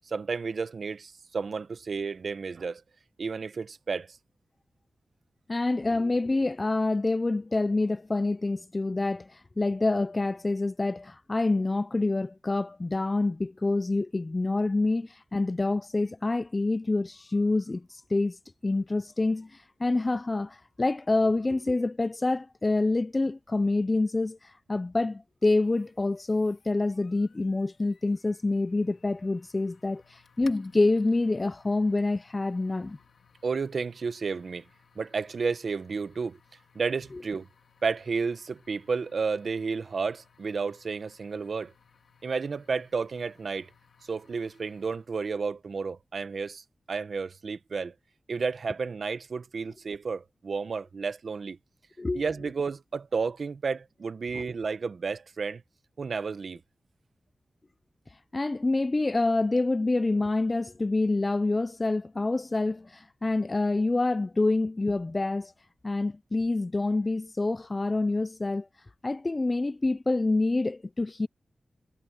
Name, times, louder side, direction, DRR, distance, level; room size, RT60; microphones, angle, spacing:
voice 1, 0.0-2.8 3.2-4.2 33.4-34.7 35.0-36.4 36.7-37.5 37.8-41.7 42.2-43.7 44.1-47.9 48.3-51.6 52.1-55.6 56.0-56.6, right 5 dB, 65° right, 0.9 m, -32 dB
voice 2, 5.5-33.0 52.0-52.2 54.3-54.5 58.1-65.5 65.8-68.7 69.0-71.3, left 2 dB, 30° left, 0.4 m, -27 dB
sound 1, 25.6-45.2, left 6 dB, 90° left, 2.4 m, -61 dB
wide cardioid pair, 110°, 0 cm